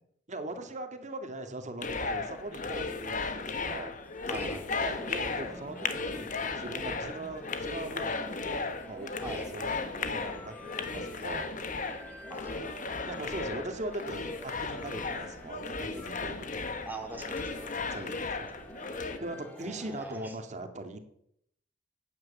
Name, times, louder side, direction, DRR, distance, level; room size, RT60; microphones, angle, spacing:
voice 1, 0.3-3.9 4.3-4.6 4.8-11.5 13.1-16.5 17.9-18.5 19.2-21.0, right 1 dB, 40° right, 7 dB, 2.3 m, -40 dB
sound 1, 1.8-19.2, left 4 dB, 45° left, 1.5 m, -35 dB
sound 2, 2.6-20.2, right 1 dB, 10° left, 2.8 m, -49 dB
voice 2, 4.3-4.8 9.2-9.5 12.3-13.1 16.9-17.7 19.6-20.3, right 2 dB, 10° right, 2 dB, 2.5 m, -42 dB
15.0 x 9.7 x 8.5 m, 0.73 s
head